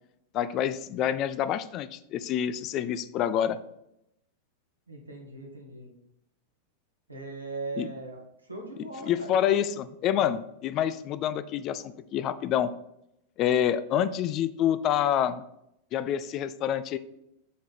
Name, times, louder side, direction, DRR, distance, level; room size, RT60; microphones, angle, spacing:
voice 1, 0.3-3.6 7.8-7.9 9.0-12.7 13.4-15.4 15.9-17.0, left 10 dB, 35° left, 14 dB, 0.4 m, -27 dB
voice 2, 4.9-5.9 7.1-9.6 10.1-10.2 10.9-11.0, right 3 dB, 85° right, 0 dB, 1.6 m, -40 dB
6.3 x 3.7 x 5.8 m, 0.81 s
figure-of-eight pair, 90°, 0 cm